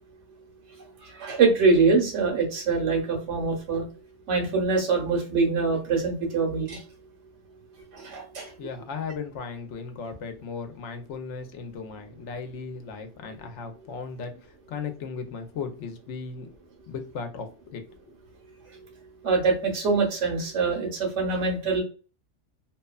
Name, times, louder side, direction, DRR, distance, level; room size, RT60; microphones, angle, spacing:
voice 1, 1.0-3.8 4.3-6.8 7.9-8.5 19.2-21.8, right 4 dB, 75° right, 1 dB, 1.3 m, -24 dB
voice 2, 8.6-16.5 16.9-17.8, left 5 dB, 75° left, 6 dB, 0.9 m, -36 dB
2.8 x 2.2 x 2.2 m, 0.37 s
omnidirectional pair, 1.2 m